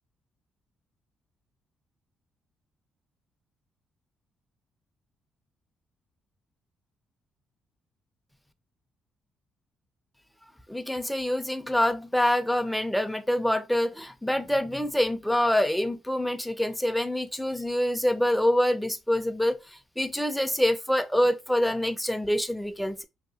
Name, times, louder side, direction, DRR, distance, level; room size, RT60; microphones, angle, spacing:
voice 1, 10.7-19.6 20.0-23.1, left 1 dB, ahead, 0.4 m, -26 dB
2.8 x 2.7 x 2.6 m
cardioid pair, 90°, 0 cm